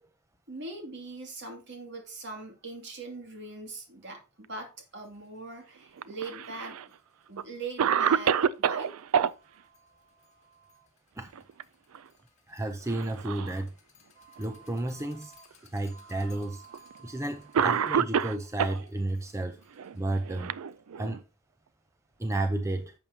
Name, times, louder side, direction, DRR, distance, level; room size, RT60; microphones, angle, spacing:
voice 1, 0.5-6.8 7.3-8.9, right 3 dB, 50° right, 2.6 m, -41 dB
sound 1, 5.0-5.1 5.5-5.6 6.0-6.1 6.4-20.3, right 3 dB, 30° left, 2.1 m, -58 dB
Cough, 6.0-6.8 7.4-7.5 7.8-9.3 11.2-11.6 11.9-12.1 12.9-13.6 14.4-14.5 15.5-15.6 16.7-16.9 17.5-18.8 19.8-21.2, right 7 dB, 70° right, 0.4 m, -27 dB
voice 2, 12.5-13.7 14.4-15.3 15.6-16.6 17.0-19.6 19.9-20.5 21.0-21.2 22.2-22.9, right 2 dB, 15° right, 0.5 m, -32 dB
11.0 x 7.1 x 2.8 m
head